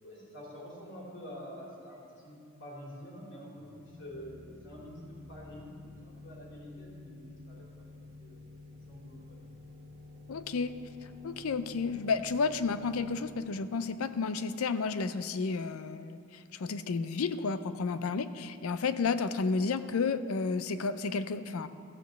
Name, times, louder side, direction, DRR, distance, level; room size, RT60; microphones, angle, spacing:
voice 1, 0.0-8.4 8.9-9.4, equal, 55° left, -4 dB, 3.1 m, -47 dB
sound 1, 3.6-15.1, left 2 dB, ahead, 1.5 m, -51 dB
voice 2, 10.3-10.8 11.2-21.7, left 4 dB, 85° left, 12 dB, 0.5 m, -31 dB
14.5 x 5.2 x 7.7 m, 2.4 s
head